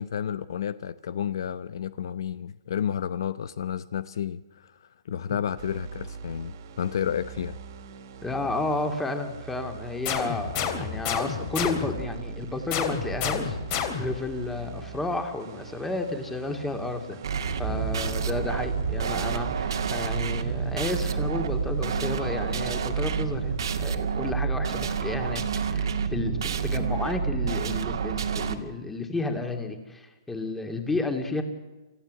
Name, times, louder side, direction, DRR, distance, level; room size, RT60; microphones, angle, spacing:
voice 1, 0.0-7.6, left 8 dB, 65° left, 15 dB, 0.8 m, -31 dB
sound 1, 5.6-24.0, right 5 dB, 55° right, 2.3 m, -42 dB
voice 2, 8.2-13.6 14.0-17.2 17.6-25.4 25.7-31.4, left 2 dB, 5° left, 5 dB, 2.6 m, -32 dB
sound 2, 10.0-12.1 12.7-14.3, left 8 dB, 40° left, 3.4 m, -30 dB
sound 3, 17.2-28.5, right 6 dB, 70° right, 2.2 m, -28 dB
27.5 x 15.0 x 7.8 m, 1.2 s
hypercardioid pair, 140°, 2 cm